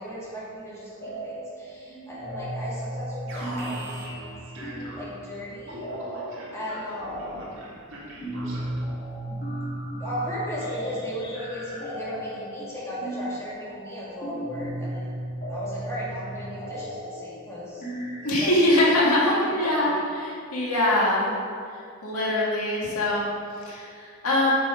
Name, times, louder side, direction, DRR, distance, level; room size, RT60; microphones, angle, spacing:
voice 1, 0.0-4.4 4.9-5.8 6.5-7.4 8.5-8.6 9.2-9.4 9.9-15.1 15.5-17.8 18.4-18.5 19.5-20.0, equal, 15° left, -8 dB, 2.2 m, -36 dB
sound 1, 1.0-1.6 1.9-20.2, right 1 dB, 45° left, 1.8 m, -36 dB
Alarm, 3.3-5.3 5.7-8.9, right 1 dB, 60° right, 2.1 m, -41 dB
voice 2, 18.2-21.3 21.7-24.5, left 1 dB, 90° left, -4 dB, 2.1 m, -23 dB
8.1 x 6.2 x 5.1 m, 2.3 s
head